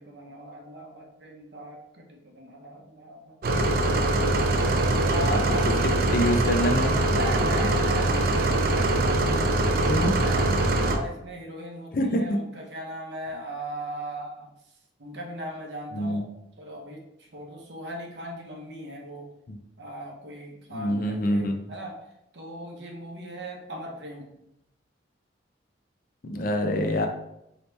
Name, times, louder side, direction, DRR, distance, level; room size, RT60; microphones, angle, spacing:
voice 1, 0.0-4.7 5.1-5.7 7.1-10.5 10.8-14.5 15.0-16.3 16.6-19.3 19.8-24.3, right 1 dB, 70° right, 0 dB, 0.7 m, -38 dB
sound 1, 3.4-11.0, right 2 dB, 50° right, 0.3 m, -23 dB
voice 2, 6.1-7.0 9.9-10.2 11.9-12.2 15.9-16.2 19.5-19.6 20.7-21.6 26.2-27.1, left 1 dB, 50° left, 4 dB, 0.4 m, -26 dB
3.2 x 2.8 x 3.2 m, 0.82 s
head